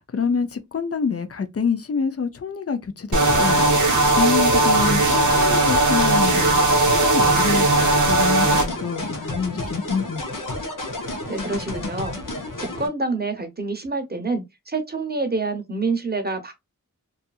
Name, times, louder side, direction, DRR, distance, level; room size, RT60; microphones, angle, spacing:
voice 1, 0.0-7.7 8.0-10.3, left 5 dB, 50° left, 0.5 m, -27 dB
sound 1, 3.1-8.7, right 2 dB, 65° right, 0.7 m, -18 dB
sound 2, 3.3-12.9, left 2 dB, 80° left, 0.7 m, -31 dB
voice 2, 11.3-12.1 12.6-16.5, right 3 dB, 30° right, 0.7 m, -27 dB
2.7 x 2.4 x 2.3 m
wide cardioid pair, 55°, 32 cm